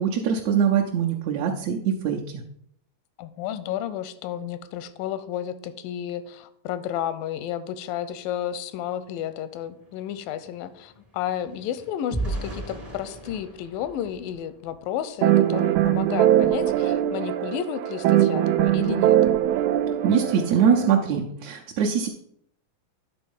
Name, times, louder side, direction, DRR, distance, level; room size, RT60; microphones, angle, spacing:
voice 1, 0.0-2.4 20.0-22.1, right 7 dB, 75° right, -1 dB, 1.7 m, -23 dB
voice 2, 3.2-19.2, left 10 dB, 85° left, 13 dB, 2.3 m, -32 dB
sound 1, 9.1-9.2 9.5-15.0 15.5-15.7 16.1-16.3, right 2 dB, 40° right, 0.5 m, -37 dB
sound 2, 15.2-20.9, right 12 dB, 90° right, 1.7 m, -21 dB
10.5 x 4.1 x 5.3 m, 0.69 s
omnidirectional pair, 3.9 m